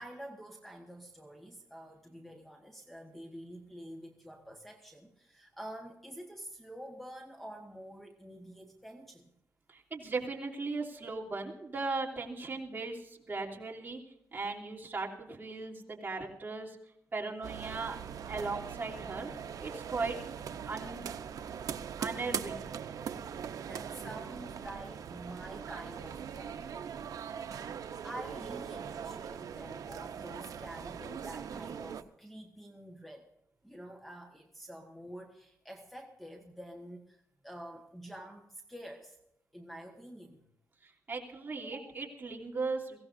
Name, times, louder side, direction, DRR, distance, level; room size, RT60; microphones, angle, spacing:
voice 1, 0.0-9.3 23.6-27.5 28.0-33.3 33.6-39.2 39.5-40.4 41.6-42.0, right 1 dB, 5° left, 2 dB, 1.4 m, -48 dB
voice 2, 9.7-14.0 14.3-16.8 17.1-18.0 18.3-19.3 19.6-20.2 20.7-21.1 22.0-22.7 40.8-43.0, right 3 dB, 30° right, -3 dB, 3.0 m, -37 dB
sound 1, 17.4-32.0, right 7 dB, 75° right, 0.8 m, -41 dB
23.0 x 16.5 x 2.6 m, 0.81 s
wide cardioid pair, 145°, 6 cm